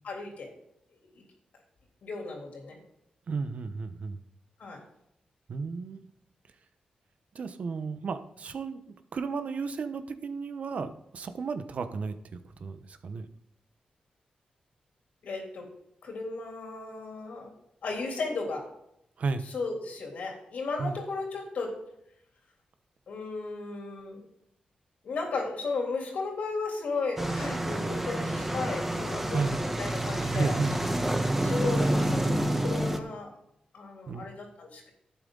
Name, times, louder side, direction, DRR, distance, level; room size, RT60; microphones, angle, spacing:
voice 1, 0.0-0.5 1.0-1.2 2.0-2.8 4.6-4.8 15.2-15.7 16.0-17.5 17.8-18.7 19.5-21.8 23.1-24.3 25.0-30.6 30.8-30.9 31.4-33.3 33.7-34.9, left 3 dB, 75° left, 1 dB, 3.6 m, -35 dB
voice 2, 3.3-4.2 5.5-6.0 7.3-8.8 9.1-12.1 12.4-13.3 19.2-19.4 20.8-21.0 29.3-29.6 30.2-31.5 31.9-32.0 34.1-34.3, right 4 dB, 60° right, 10 dB, 1.0 m, -34 dB
sound 1, 27.2-33.0, right 1 dB, 10° right, 1.3 m, -28 dB
12.0 x 8.5 x 4.0 m, 0.78 s
wide cardioid pair, 100°, 3 cm